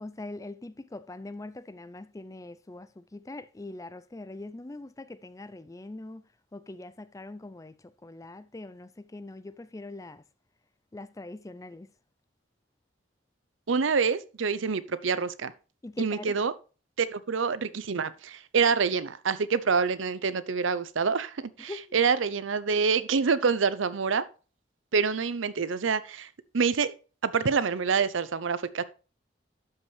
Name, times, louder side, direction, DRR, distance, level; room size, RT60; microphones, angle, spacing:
voice 1, 0.0-6.2 6.5-10.2 10.9-11.9 15.8-16.4 21.6-21.8, left 2 dB, 15° left, 0.4 m, -42 dB
voice 2, 13.7-15.5 16.0-16.5 17.0-24.2 24.9-26.3 26.5-26.9 27.2-28.8, right 5 dB, 85° right, 0.6 m, -26 dB
12.5 x 5.5 x 3.3 m
head